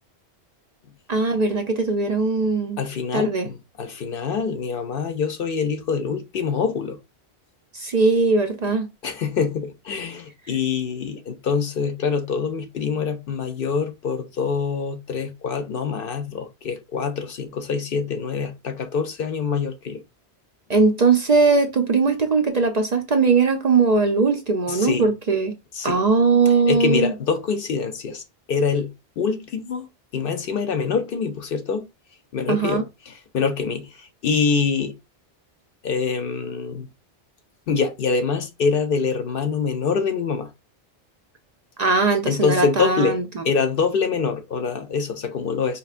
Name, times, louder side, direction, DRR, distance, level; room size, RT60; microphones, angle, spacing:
voice 1, 1.1-2.8 3.1-3.5 7.7-8.9 20.7-25.5 25.8-27.1 32.5-32.8 41.8-43.4, right 4 dB, 50° right, 0.6 m, -20 dB
voice 2, 2.8-7.0 9.0-20.0 24.7-25.1 25.7-26.0 26.5-28.2 28.5-29.9 30.1-31.9 32.3-35.0 35.8-36.9 37.7-40.5 42.3-45.8, left 5 dB, 60° left, 0.8 m, -25 dB
4.6 x 3.1 x 2.4 m
omnidirectional pair, 1.1 m